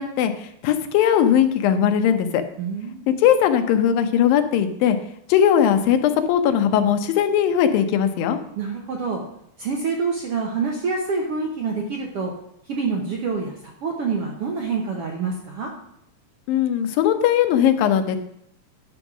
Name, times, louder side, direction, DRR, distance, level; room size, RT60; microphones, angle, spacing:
voice 1, 0.0-2.4 3.2-5.0 5.3-8.4 16.5-18.2, left 9 dB, 90° left, 8 dB, 2.6 m, -19 dB
voice 2, 2.6-3.0 8.6-9.2 9.6-12.3 12.7-15.7, right 4 dB, 65° right, 1 dB, 1.4 m, -26 dB
10.5 x 5.5 x 6.0 m, 0.75 s
omnidirectional pair, 4.0 m